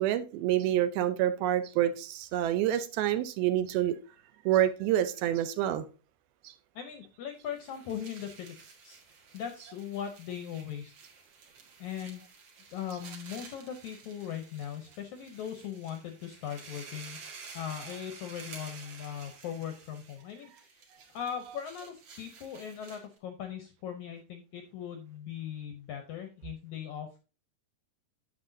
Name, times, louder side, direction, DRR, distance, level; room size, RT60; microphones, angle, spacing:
voice 1, 0.0-4.0 4.5-5.8, right 12 dB, 80° right, 2.5 m, -27 dB
voice 2, 6.7-8.6 8.8-10.9 11.8-12.2 12.7-20.9 21.1-27.2, left 9 dB, 75° left, 1.7 m, -39 dB
sound 1, 7.4-23.2, right 5 dB, 50° right, 2.7 m, -51 dB
9.5 x 7.5 x 2.6 m
omnidirectional pair, 4.5 m